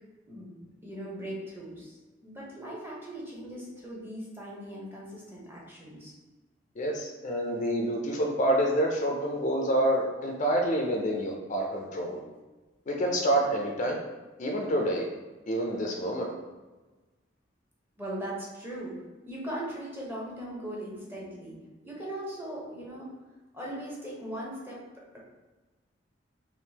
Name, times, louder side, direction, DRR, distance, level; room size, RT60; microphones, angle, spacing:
voice 1, 0.3-6.1 18.0-19.0 19.3-21.6 21.8-23.2 23.5-24.8, right 1 dB, 10° right, -4 dB, 0.8 m, -39 dB
voice 2, 6.8-12.2 12.9-14.0 14.4-15.1 15.5-16.3, right 1 dB, 40° left, 1 dB, 0.4 m, -27 dB
3.5 x 2.5 x 2.8 m, 1.2 s
head